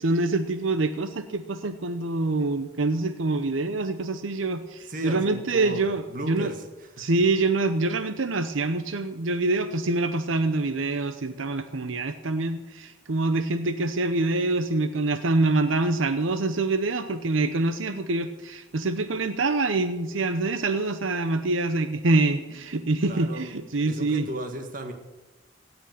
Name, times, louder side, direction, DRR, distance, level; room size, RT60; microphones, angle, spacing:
voice 1, 0.0-6.5 7.0-24.3, right 2 dB, 85° right, 9 dB, 0.8 m, -25 dB
voice 2, 4.9-7.2 23.0-23.5 23.8-24.9, right 1 dB, 45° right, 5 dB, 1.7 m, -36 dB
17.0 x 6.2 x 9.2 m, 1.1 s
head